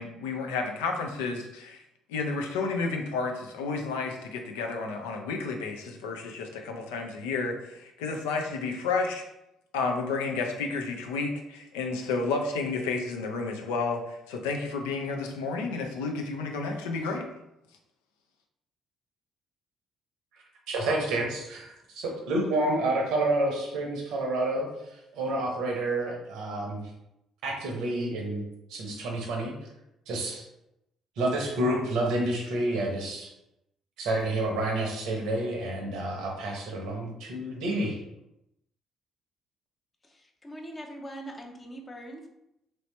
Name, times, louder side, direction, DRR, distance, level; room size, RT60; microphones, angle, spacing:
voice 1, 0.0-1.8 2.1-9.2 9.7-17.3, left 4 dB, 75° left, 3 dB, 0.4 m, -31 dB
voice 2, 20.7-26.8 27.4-28.4 28.7-29.5 30.1-30.5 31.2-33.3 34.0-38.0, right 1 dB, 65° right, 0 dB, 0.7 m, -29 dB
voice 3, 40.0-42.3, right 1 dB, 25° left, 2 dB, 0.7 m, -42 dB
3.1 x 2.7 x 3.1 m, 0.87 s
hypercardioid pair, 50°, 0 cm